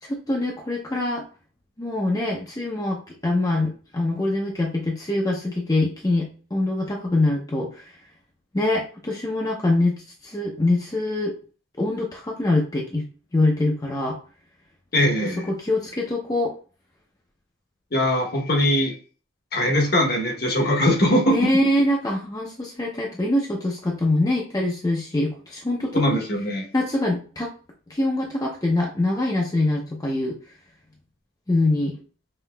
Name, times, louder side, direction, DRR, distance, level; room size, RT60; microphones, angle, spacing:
voice 1, 0.0-1.2 1.8-8.0 8.5-11.3 11.8-13.0 13.3-14.2 15.2-16.5 21.3-26.2 26.7-27.5 27.9-30.4 31.5-32.0, left 2 dB, 20° left, -1 dB, 0.5 m, -24 dB
voice 2, 14.9-15.5 17.9-18.9 19.5-21.4 25.9-26.6, left 1 dB, 50° left, 1 dB, 1.0 m, -21 dB
5.5 x 2.7 x 2.3 m, 0.39 s
head